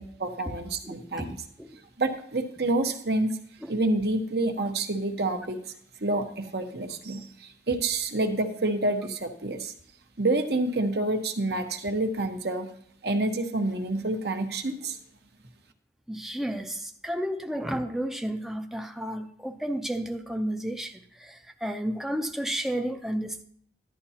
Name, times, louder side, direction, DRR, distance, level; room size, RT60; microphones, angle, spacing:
voice 1, 0.0-1.4 2.0-3.4 3.7-5.7 6.0-9.7 10.2-12.7 13.0-15.0, right 2 dB, 65° right, 6 dB, 1.1 m, -28 dB
voice 2, 16.1-23.4, right 1 dB, ahead, 5 dB, 0.5 m, -32 dB
14.5 x 11.5 x 2.8 m, 0.63 s
head